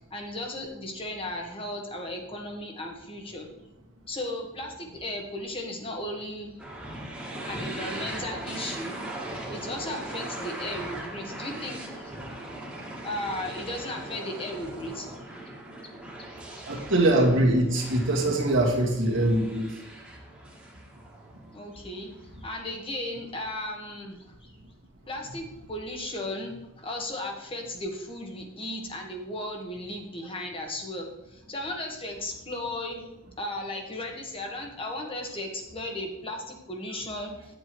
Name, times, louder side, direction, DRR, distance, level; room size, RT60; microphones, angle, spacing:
voice 1, 0.0-3.5 4.1-6.5 7.5-9.0 9.5-12.2 13.0-15.1 16.6-16.7 21.5-22.1 22.4-24.5 25.1-33.0 33.4-37.3, left 1 dB, 30° left, 1 dB, 1.5 m, -35 dB
sound 1, 6.6-21.5, right 1 dB, 5° right, 1.8 m, -39 dB
voice 2, 16.7-19.7, right 1 dB, 70° right, -1 dB, 1.9 m, -23 dB
9.7 x 7.8 x 3.1 m, 0.90 s
head